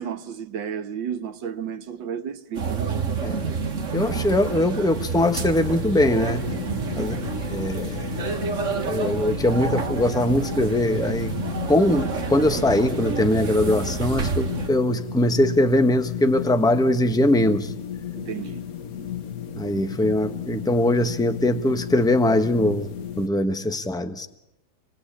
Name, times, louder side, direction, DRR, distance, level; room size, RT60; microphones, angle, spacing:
voice 1, 0.0-2.9 6.5-7.0 18.1-18.7, right 8 dB, 75° right, 1.9 m, -32 dB
sound 1, 2.5-14.7, right 5 dB, 40° right, 1.9 m, -29 dB
voice 2, 3.2-3.6 3.9-6.5 6.9-7.1 7.5-8.1 8.8-11.4 11.7-17.7 19.5-22.9 23.2-24.3, left 1 dB, 5° left, 0.9 m, -21 dB
sound 2, 5.2-23.3, left 9 dB, 50° left, 1.6 m, -35 dB
26.5 x 20.5 x 8.7 m
omnidirectional pair, 2.1 m